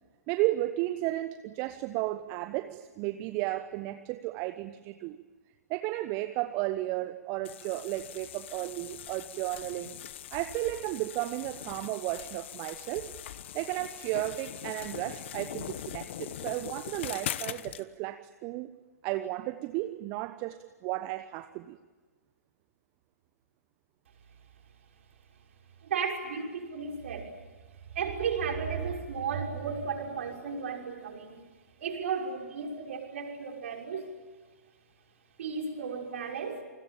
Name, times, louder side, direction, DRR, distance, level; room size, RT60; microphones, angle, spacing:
voice 1, 0.3-5.2 5.7-10.0 10.3-18.7 19.0-21.8, right 17 dB, 30° right, 11 dB, 1.0 m, -34 dB
sound 1, 7.4-17.8, left 11 dB, 45° left, 1.2 m, -41 dB
voice 2, 25.8-27.3 27.9-31.4 31.8-34.1 35.4-36.6, right 6 dB, 50° right, 2 dB, 6.0 m, -34 dB
29.0 x 21.5 x 8.9 m, 1.3 s
figure-of-eight pair, 120°, 9 cm